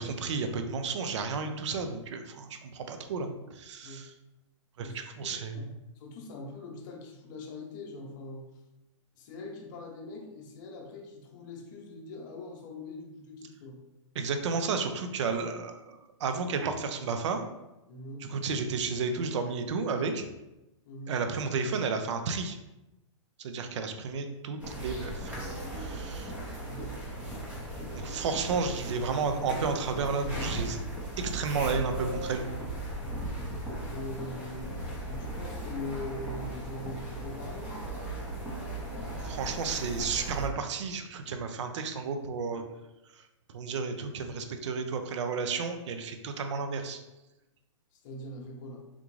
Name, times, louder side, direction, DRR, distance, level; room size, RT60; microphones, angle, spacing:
voice 1, 0.0-4.1 4.8-5.7 14.2-17.4 18.3-20.2 21.1-22.6 23.4-26.3 27.9-30.8 31.2-32.5 39.2-42.6 43.5-47.0, right 5 dB, 60° right, 7 dB, 0.5 m, -32 dB
voice 2, 4.8-5.6 5.9-8.5 9.2-13.8 17.9-18.3 20.9-21.2 26.6-27.0 33.1-34.8 35.1-38.1 48.0-48.9, left 2 dB, 35° left, 1 dB, 0.7 m, -42 dB
sound 1, 24.6-40.5, right 1 dB, 10° right, 0.7 m, -37 dB
3.6 x 2.4 x 3.1 m, 0.96 s
hypercardioid pair, 150°, 17 cm